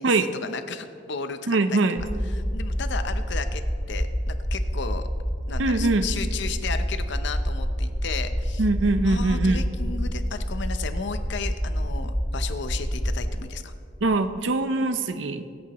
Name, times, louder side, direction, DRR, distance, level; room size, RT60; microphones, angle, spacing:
voice 1, 0.0-1.8 2.3-3.6 3.9-5.1 5.5-8.6 9.0-13.7, left 5 dB, 65° left, 9 dB, 0.7 m, -34 dB
voice 2, 1.5-2.0 5.6-6.1 8.6-9.7 14.0-15.4, right 2 dB, 75° right, 9 dB, 0.7 m, -22 dB
sound 1, 2.0-13.4, equal, ahead, 0.7 m, -28 dB
24.5 x 8.6 x 3.0 m, 2.3 s
head